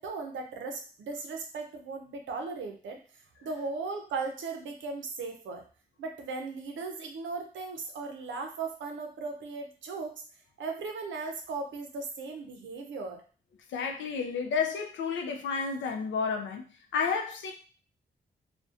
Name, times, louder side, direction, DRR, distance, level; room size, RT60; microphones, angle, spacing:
voice 1, 0.0-5.6 6.0-10.1 10.6-13.2, right 4 dB, 85° right, 0.5 m, -37 dB
voice 2, 13.7-16.6 16.9-17.5, left 5 dB, 85° left, 0.5 m, -31 dB
2.5 x 2.1 x 2.4 m
cardioid pair, 50°, 19 cm